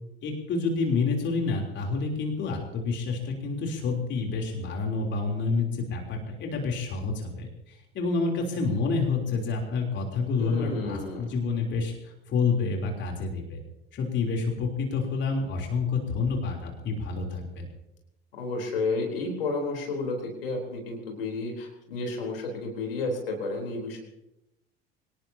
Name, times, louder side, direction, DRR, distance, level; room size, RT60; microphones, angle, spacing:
voice 1, 0.2-13.6 13.9-17.7, left 4 dB, 40° left, 1 dB, 3.5 m, -28 dB
voice 2, 10.4-11.2 18.4-24.0, left 3 dB, 70° left, 1 dB, 3.9 m, -31 dB
25.0 x 18.5 x 2.9 m, 0.89 s
figure-of-eight pair, 70°, 30 cm